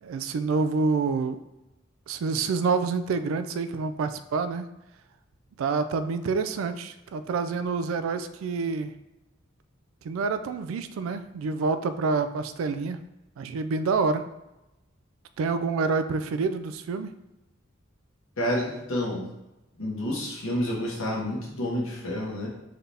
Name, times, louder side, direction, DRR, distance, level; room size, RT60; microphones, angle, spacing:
voice 1, 0.0-1.4 2.1-4.7 5.6-9.0 10.0-13.0 13.4-14.2 15.4-17.2, right 4 dB, 85° right, 12 dB, 0.3 m, -27 dB
voice 2, 18.4-19.3 19.8-22.5, left 1 dB, 85° left, -3 dB, 1.2 m, -29 dB
4.0 x 2.7 x 3.4 m, 0.95 s
head